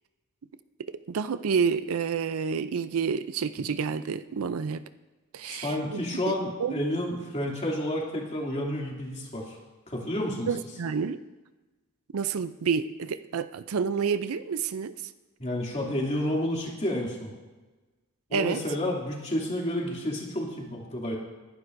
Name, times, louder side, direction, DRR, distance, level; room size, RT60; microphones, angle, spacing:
voice 1, 0.9-4.8 5.3-6.8 10.5-11.2 12.1-14.9 18.3-18.6, right 6 dB, 70° right, 13 dB, 0.5 m, -29 dB
voice 2, 5.4-9.6 9.9-10.5 15.4-17.3 18.3-21.2, left 1 dB, 30° left, -2 dB, 2.6 m, -30 dB
20.0 x 11.0 x 2.6 m, 1.2 s
head